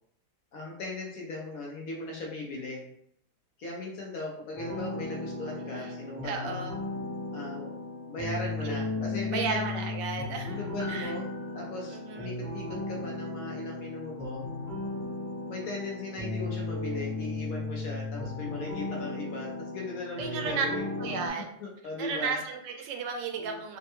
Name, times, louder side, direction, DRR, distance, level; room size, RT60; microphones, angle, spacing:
voice 1, 0.5-2.9 3.6-6.6 7.3-7.7 8.1-9.9 10.5-11.3 11.5-14.4 15.4-21.3 21.6-22.4 23.4-23.6, left 2 dB, 65° left, -1 dB, 1.0 m, -38 dB
sound 1, 4.5-21.3, left 2 dB, 15° left, 0.7 m, -36 dB
voice 2, 6.2-6.7 8.6-8.8 9.3-11.1 11.9-12.3 20.2-20.7 21.0-21.5 22.0-23.8, right 5 dB, 85° right, 5 dB, 1.2 m, -34 dB
Piano, 10.8-15.4 15.6-15.7, left 2 dB, 70° right, 1.3 m, -50 dB
3.4 x 2.1 x 2.9 m, 0.70 s
omnidirectional pair, 1.8 m